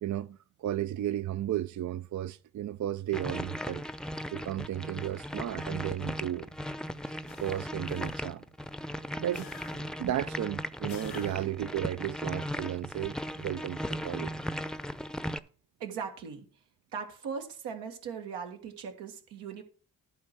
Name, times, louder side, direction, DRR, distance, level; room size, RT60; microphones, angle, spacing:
voice 1, 0.0-3.8 4.3-6.5 7.4-8.4 9.2-9.5 10.0-14.3, right 12 dB, 45° right, 0.5 m, -34 dB
sound 1, 3.1-15.4, equal, ahead, 0.7 m, -37 dB
sound 2, 7.3-8.5 9.3-10.1 10.9-11.7, left 8 dB, 85° left, 1.5 m, -50 dB
voice 2, 15.8-16.6 16.9-19.6, right 6 dB, 80° right, 1.7 m, -39 dB
11.0 x 4.4 x 5.9 m
hypercardioid pair, 40°, 40 cm